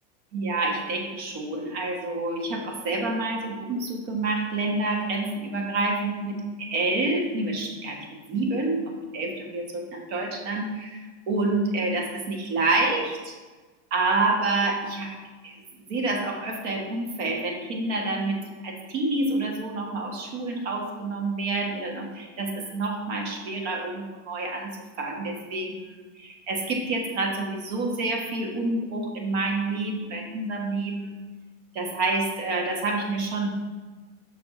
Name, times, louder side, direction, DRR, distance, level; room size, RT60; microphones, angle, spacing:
voice 1, 0.3-13.3 13.9-15.2 15.4-15.6 15.9-25.9 26.1-31.1 31.7-33.5, right 2 dB, 60° right, 1 dB, 1.4 m, -28 dB
5.9 x 4.7 x 3.7 m, 1.3 s
supercardioid pair, 165°, 38 cm